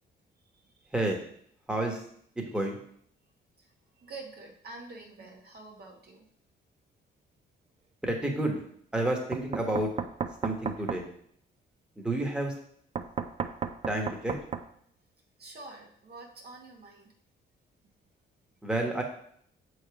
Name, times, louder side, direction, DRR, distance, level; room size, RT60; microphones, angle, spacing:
voice 1, 1.7-2.0 2.3-2.8 8.0-8.6 8.9-9.9 10.4-11.1 12.0-12.5 13.9-14.3 18.6-19.0, right 1 dB, 5° right, 0 dB, 1.2 m, -30 dB
voice 2, 4.0-6.3 15.4-17.1, right 3 dB, 50° right, 1 dB, 1.1 m, -47 dB
Knock, 9.3-11.0 13.0-14.7, right 6 dB, 30° right, 0.4 m, -34 dB
6.3 x 3.2 x 4.8 m, 0.64 s
cardioid pair, 90°, 20 cm